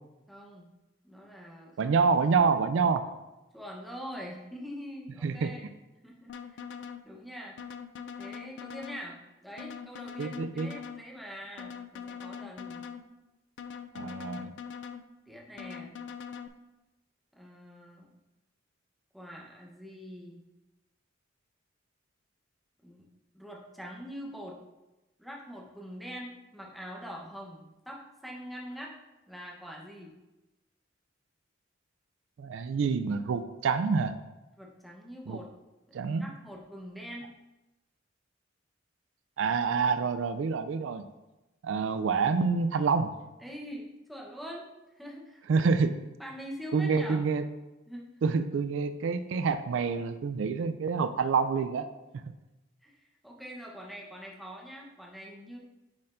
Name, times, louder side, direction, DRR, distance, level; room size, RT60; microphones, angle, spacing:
voice 1, 0.3-0.7 1.0-1.9 3.5-5.7 6.0-6.6 7.0-7.6 8.2-12.8 15.3-16.0 17.3-18.1 19.1-20.4 22.8-23.0 23.3-24.6 25.2-28.9 29.3-30.1 34.6-35.5 35.9-37.3 43.4-44.7 45.0-45.4 46.2-47.2 47.9-48.1 52.8-55.6, equal, ahead, -2 dB, 0.9 m, -44 dB
voice 2, 1.8-3.1 5.2-5.5 10.2-10.7 13.9-14.5 32.4-34.2 35.3-35.4 35.9-36.3 39.4-41.0 41.6-43.1 45.5-46.0 46.7-47.5 48.2-51.9 52.1-52.2, right 5 dB, 75° right, 11 dB, 0.3 m, -27 dB
sound 1, 6.3-7.0 7.6-9.0 9.6-11.0 11.6-13.0 13.6-15.0 15.6-16.5, left 7 dB, 65° left, 0.4 m, -42 dB
9.5 x 4.2 x 2.6 m, 1.0 s
head